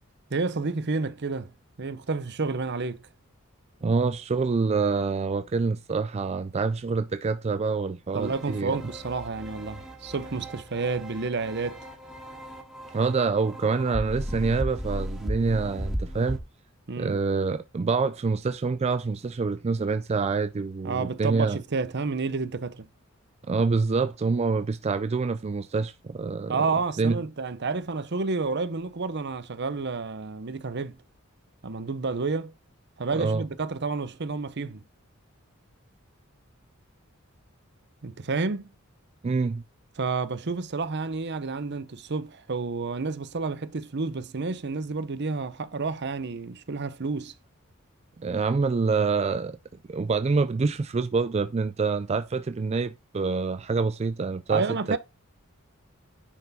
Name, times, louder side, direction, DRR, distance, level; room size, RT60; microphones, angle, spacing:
voice 1, 0.3-1.5 1.8-3.0 8.1-11.8 16.9-17.2 20.8-22.9 26.5-31.0 31.6-32.5 33.0-34.8 38.0-38.7 40.0-47.3 54.5-55.0, right 4 dB, 55° right, 0.8 m, -30 dB
voice 2, 3.8-8.8 12.9-16.4 17.0-21.6 23.5-26.7 27.0-27.2 33.2-33.4 39.2-39.6 48.2-49.6 49.9-55.0, right 4 dB, 30° right, 0.4 m, -26 dB
sound 1, 8.2-16.4, equal, ahead, 2.0 m, -36 dB
10.0 x 4.5 x 4.1 m
head